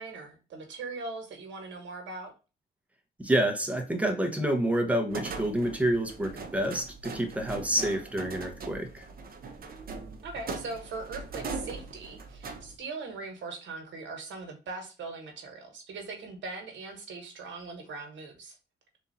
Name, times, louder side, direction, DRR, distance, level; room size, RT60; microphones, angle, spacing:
voice 1, 0.0-2.3 10.2-18.6, right 3 dB, 70° right, 1.4 m, -40 dB
voice 2, 3.2-9.1, right 1 dB, 5° right, 1.0 m, -28 dB
sound 1, 5.1-12.8, right 4 dB, 50° right, 0.8 m, -40 dB
3.6 x 2.7 x 4.1 m
cardioid pair, 90°, 20 cm